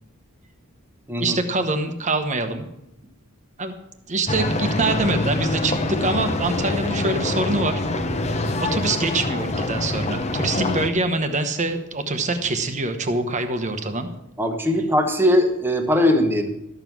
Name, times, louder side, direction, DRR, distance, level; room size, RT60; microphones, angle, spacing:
voice 1, 1.2-2.7 3.6-3.7 4.1-7.8 8.6-14.1, right 2 dB, 35° right, 8 dB, 1.1 m, -24 dB
sound 1, 4.3-10.9, left 2 dB, 30° left, 0.9 m, -25 dB
voice 2, 14.4-16.5, left 1 dB, 10° right, 4 dB, 1.2 m, -20 dB
12.5 x 7.2 x 6.1 m, 0.87 s
head